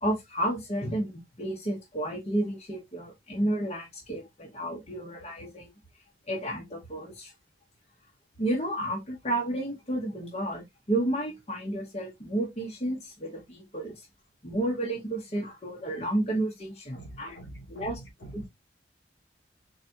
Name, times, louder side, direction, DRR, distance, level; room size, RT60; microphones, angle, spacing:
voice 1, 0.0-5.7 6.3-7.3 8.4-13.9 14.4-17.4 17.7-18.0 18.3-18.5, right 1 dB, 35° left, 1.1 m, -31 dB
voice 2, 16.9-18.5, right 1 dB, 75° left, 2.7 m, -45 dB
4.0 x 3.3 x 2.8 m
head